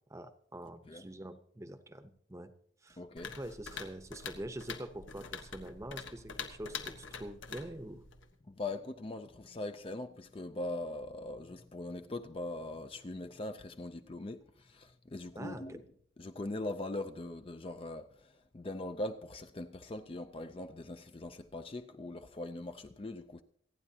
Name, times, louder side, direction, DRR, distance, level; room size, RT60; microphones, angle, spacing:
voice 1, 0.1-2.5 2.8-3.0 3.4-8.0 15.4-15.8, right 1 dB, 15° right, 0.8 m, -45 dB
voice 2, 3.0-3.4 8.5-15.8 16.2-23.4, left 2 dB, 30° left, 0.4 m, -41 dB
sound 1, 3.2-8.3, left 6 dB, 80° left, 1.4 m, -45 dB
28.0 x 9.8 x 2.8 m
head